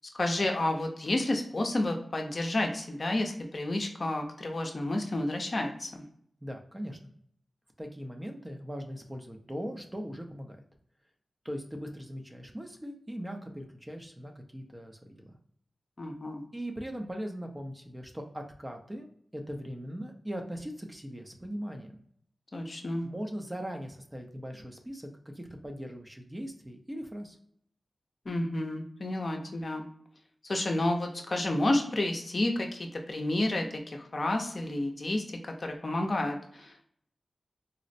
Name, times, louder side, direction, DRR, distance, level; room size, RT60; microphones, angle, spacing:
voice 1, 0.1-6.0 16.0-16.4 22.5-23.0 28.3-29.8 30.4-36.8, left 1 dB, 50° left, 3 dB, 0.6 m, -30 dB
voice 2, 6.4-7.1 7.8-10.6 11.4-15.4 16.5-19.1 19.3-22.0 23.0-27.4, equal, 15° right, 3 dB, 0.5 m, -40 dB
4.0 x 2.0 x 2.5 m, 0.65 s
wide cardioid pair, 80°, 0 cm